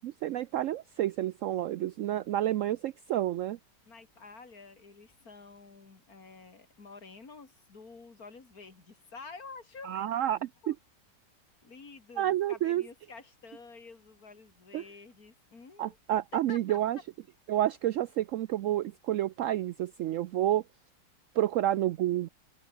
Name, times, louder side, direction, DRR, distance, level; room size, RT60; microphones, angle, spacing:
voice 1, 0.0-3.6 9.8-10.4 10.7-10.8 12.2-12.8 14.7-14.8 15.8-17.0 17.5-20.6 21.4-22.3, right 13 dB, 80° right, 0.7 m, -29 dB
voice 2, 3.8-10.0 10.6-10.8 11.6-16.0 16.3-16.8, left 4 dB, 55° left, 3.5 m, -49 dB
open air
omnidirectional pair, 1.9 m